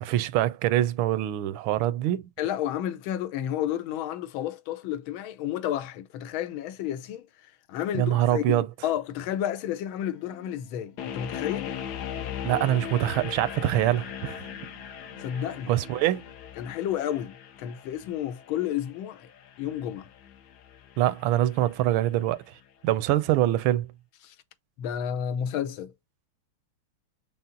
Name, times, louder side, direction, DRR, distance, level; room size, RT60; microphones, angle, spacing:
voice 1, 0.0-2.3 7.9-8.7 12.4-14.5 15.7-16.2 21.0-22.6 22.8-23.9, right 13 dB, 80° right, 1.4 m, -24 dB
voice 2, 2.4-11.7 15.2-15.7 16.6-19.3 19.6-20.1 24.2-24.3 24.8-25.9, left 10 dB, 80° left, 1.5 m, -31 dB
sound 1, 10.1-16.3, equal, 45° left, 1.3 m, -52 dB
sound 2, 11.0-22.0, left 9 dB, 65° left, 1.1 m, -39 dB
5.6 x 2.0 x 3.7 m
omnidirectional pair, 2.2 m